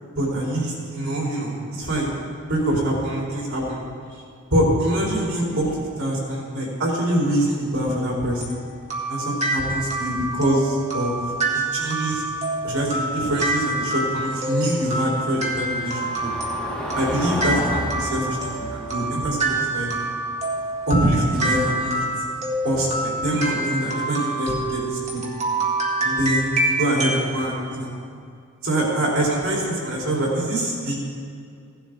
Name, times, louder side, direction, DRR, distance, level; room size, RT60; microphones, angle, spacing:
voice 1, 0.2-2.2 2.5-3.8 4.5-8.6 9.1-11.2 11.5-12.2 12.6-16.3 17.0-20.0 20.9-21.9 22.6-25.2 26.0-27.9 28.6-30.9, right 1 dB, 70° right, -4 dB, 4.0 m, -24 dB
sound 1, 8.4-27.3, right 2 dB, 30° right, 1.9 m, -27 dB
Car passing by / Engine, 12.1-22.8, equal, 5° left, 1.9 m, -34 dB
17.0 x 11.5 x 4.0 m, 2.3 s
head